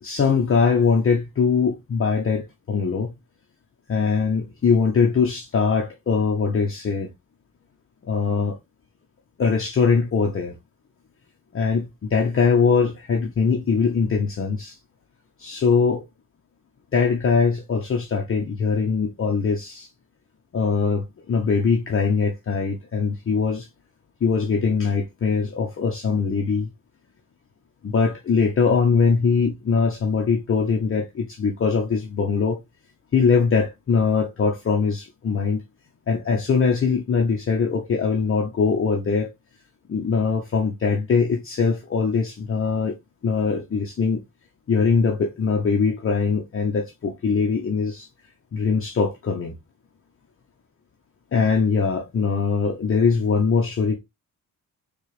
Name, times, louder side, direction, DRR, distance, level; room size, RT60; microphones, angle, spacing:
voice 1, 0.0-3.1 3.9-7.1 8.1-8.6 9.4-10.6 11.5-14.8 15.4-16.0 16.9-19.9 20.5-23.7 24.2-26.7 27.8-32.6 33.1-35.6 36.1-39.3 39.9-43.0 43.2-44.2 44.7-48.1 48.5-49.6 51.3-54.0, left 5 dB, 40° left, 0.7 m, -22 dB
4.5 x 2.4 x 3.1 m
cardioid pair, 80°, 36 cm